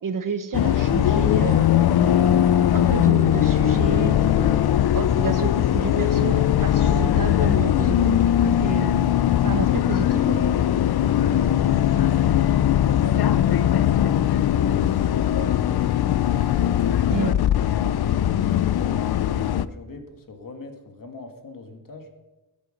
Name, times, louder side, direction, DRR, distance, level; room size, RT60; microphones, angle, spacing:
voice 1, 0.0-1.7 2.7-4.6 4.9-8.2 8.4-8.9 9.4-10.5 17.1-17.3, right 6 dB, 55° right, 9 dB, 1.2 m, -30 dB
Bus, 0.5-19.7, left 11 dB, 75° left, 0.6 m, -20 dB
voice 2, 11.2-16.1 16.6-22.1, left 3 dB, 60° left, 5 dB, 1.9 m, -40 dB
16.5 x 8.1 x 6.4 m, 1.1 s
wide cardioid pair, 175°, 38 cm